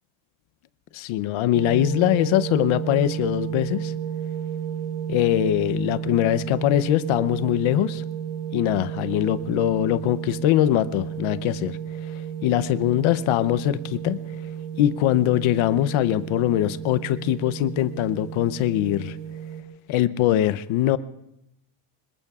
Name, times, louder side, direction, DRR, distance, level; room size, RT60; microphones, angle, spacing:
voice 1, 0.9-3.9 5.1-8.0 8.5-11.8 12.4-14.2 14.8-19.2 19.9-21.0, left 13 dB, 80° left, 15 dB, 0.8 m, -22 dB
sound 1, 1.5-19.6, right 9 dB, 60° right, 1.8 m, -32 dB
25.5 x 22.0 x 2.4 m, 0.83 s
cardioid pair, 175°, 47 cm